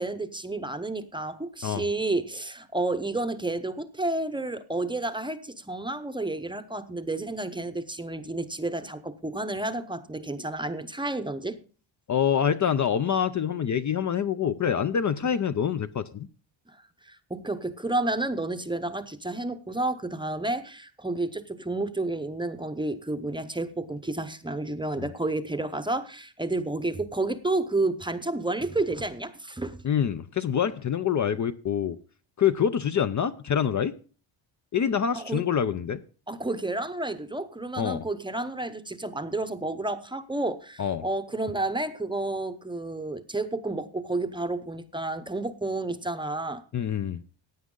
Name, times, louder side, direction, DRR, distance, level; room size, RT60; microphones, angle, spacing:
voice 1, 0.0-11.6 16.7-16.8 17.0-29.8 35.1-35.4 36.3-46.6, right 2 dB, 10° right, 9 dB, 0.7 m, -31 dB
voice 2, 12.1-16.3 29.8-32.0 32.4-33.9 34.7-36.0 37.8-38.0 40.8-41.0 46.7-47.2, left 8 dB, 40° left, 12 dB, 0.6 m, -26 dB
16.0 x 9.3 x 3.8 m, 0.38 s
wide cardioid pair, 170°, 47 cm